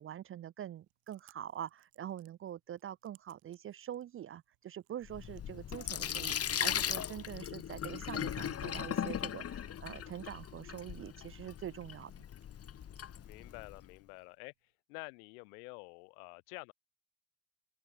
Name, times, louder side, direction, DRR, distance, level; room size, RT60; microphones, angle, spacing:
voice 1, 0.0-12.1, right 11 dB, 30° right, 0.5 m, -44 dB
Chewing mastication, 0.7-14.7, right 29 dB, 70° right, 5.2 m, -73 dB
Sink (filling or washing), 5.0-13.8, left 9 dB, 35° left, 1.1 m, -38 dB
voice 2, 13.2-14.5 14.9-16.7, left 31 dB, 75° left, 2.6 m, -49 dB
open air
hypercardioid pair, 75°, 44 cm